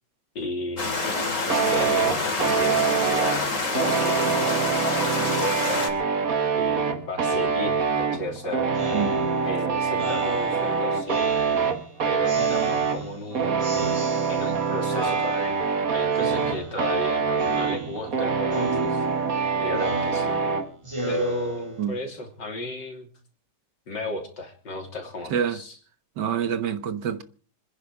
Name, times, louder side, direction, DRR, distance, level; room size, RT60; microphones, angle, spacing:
voice 1, 0.4-5.8 6.6-8.7 9.4-11.3 12.0-13.9 14.3-15.7 15.9-19.1 19.6-20.4 21.1-23.1 23.9-25.8, left 1 dB, 80° left, 3.9 m, -34 dB
sound 1, 0.8-5.9, left 3 dB, 45° left, 3.1 m, -27 dB
sound 2, 1.5-20.7, right 5 dB, 55° right, 1.9 m, -25 dB
Speech synthesizer, 8.7-11.9 12.3-13.3 13.6-14.6 14.9-15.8 16.2-17.1 17.4-18.2 18.5-22.1, right 2 dB, 15° right, 2.2 m, -34 dB
voice 2, 26.2-27.2, right 8 dB, 75° right, 1.9 m, -26 dB
26.5 x 10.0 x 4.9 m
omnidirectional pair, 1.9 m